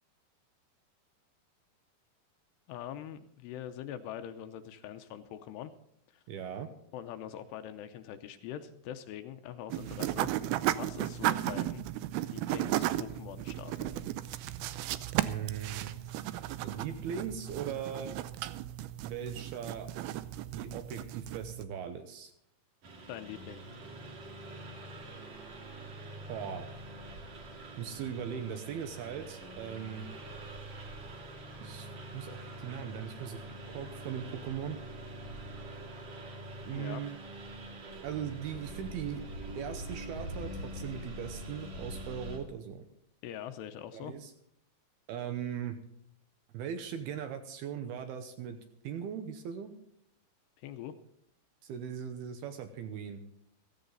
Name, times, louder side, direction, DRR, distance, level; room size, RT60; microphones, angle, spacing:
voice 1, 2.7-5.7 6.1-6.2 6.9-10.3 10.7-11.8 12.2-13.9 23.1-23.6 36.7-37.0 43.2-44.1 50.6-50.9, left 10 dB, 80° left, 9 dB, 2.6 m, -43 dB
voice 2, 6.3-6.7 15.2-16.1 16.6-18.1 19.0-19.9 20.5-22.3 26.3-26.7 27.8-30.1 31.6-34.8 36.6-37.2 38.0-39.2 39.6-42.9 43.9-44.3 45.1-45.8 46.5-48.6 48.8-49.8 51.6-53.2, right 8 dB, 75° right, 7 dB, 2.5 m, -39 dB
sound 1, 9.7-21.6, right 14 dB, 90° right, 2.2 m, -35 dB
Engine, 22.8-42.4, right 1 dB, 45° right, 3.1 m, -44 dB
16.0 x 14.5 x 3.9 m, 0.76 s
omnidirectional pair, 5.2 m